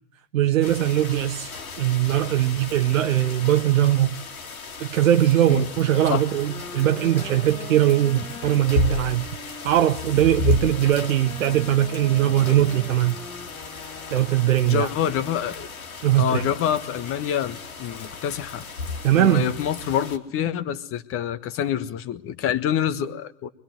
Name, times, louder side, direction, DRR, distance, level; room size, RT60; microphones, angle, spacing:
voice 1, 0.3-1.5 1.8-4.1 4.8-9.3 9.6-13.2 14.1-14.9 16.0-16.5 19.0-19.5, right 12 dB, 65° right, 1.0 m, -20 dB
sound 1, 0.6-20.2, left 4 dB, 80° left, 2.9 m, -34 dB
sound 2, 5.8-15.0, left 3 dB, 10° left, 1.5 m, -42 dB
voice 2, 14.6-15.7 16.2-18.6 19.1-23.5, left 9 dB, 30° left, 1.5 m, -26 dB
24.0 x 22.0 x 9.3 m
hypercardioid pair, 100°, 42 cm